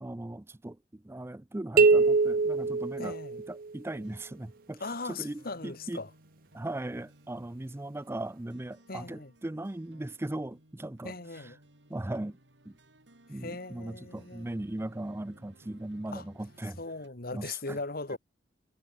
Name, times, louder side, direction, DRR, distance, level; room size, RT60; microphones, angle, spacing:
voice 1, 0.0-3.2 3.5-4.8 5.1-6.0 6.5-11.1 11.9-12.4 12.7-12.8 13.3-16.8 17.3-17.8, right 1 dB, 15° right, 0.5 m, -38 dB
sound 1, 1.8-3.7, right 4 dB, 55° right, 0.6 m, -23 dB
voice 2, 3.0-3.4 4.8-6.1 8.9-9.3 11.0-11.6 13.3-14.5 16.1-16.3 16.8-18.2, left 3 dB, 55° left, 2.4 m, -39 dB
sound 2, 4.0-17.1, right 1 dB, 85° right, 4.7 m, -60 dB
head